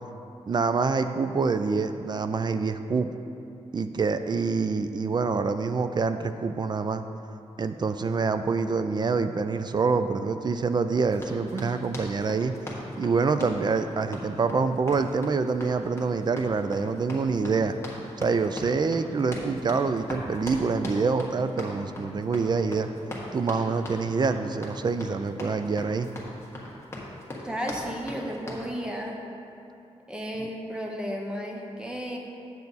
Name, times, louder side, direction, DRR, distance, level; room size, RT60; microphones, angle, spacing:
voice 1, 0.5-3.1 3.7-7.0 7.6-12.5 13.0-17.8 18.2-22.9 23.3-26.1, right 4 dB, 40° right, 9 dB, 0.4 m, -26 dB
Run, 11.1-28.7, left 1 dB, 20° left, 1.5 m, -40 dB
voice 2, 27.4-29.2 30.1-32.2, equal, 10° right, 0 dB, 0.9 m, -33 dB
8.2 x 6.6 x 4.1 m, 2.7 s
wide cardioid pair, 95°, 11 cm